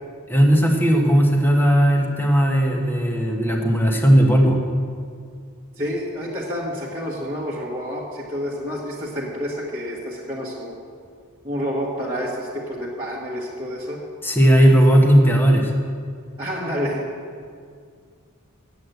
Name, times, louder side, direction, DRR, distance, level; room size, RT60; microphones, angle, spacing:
voice 1, 0.3-4.6 14.2-15.7, equal, 10° left, 1 dB, 1.2 m, -16 dB
voice 2, 5.8-10.8 11.4-14.0 16.4-17.1, equal, 20° right, -8 dB, 1.4 m, -29 dB
8.4 x 8.0 x 7.9 m, 2.2 s
head